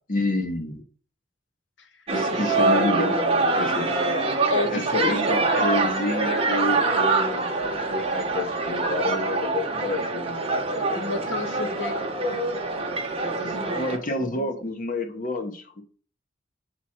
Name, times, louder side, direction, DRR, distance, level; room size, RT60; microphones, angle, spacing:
voice 1, 0.1-0.8 2.1-3.9 4.7-10.5 13.7-15.8, left 2 dB, 50° left, 5 dB, 0.9 m, -29 dB
sound 1, 2.1-14.0, right 3 dB, 30° right, 0.8 m, -24 dB
voice 2, 2.3-2.6 4.5-5.3 10.9-12.0 12.3-13.7 14.2-14.5, left 3 dB, 80° left, 5 dB, 0.9 m, -32 dB
7.4 x 3.1 x 4.2 m, 0.43 s
head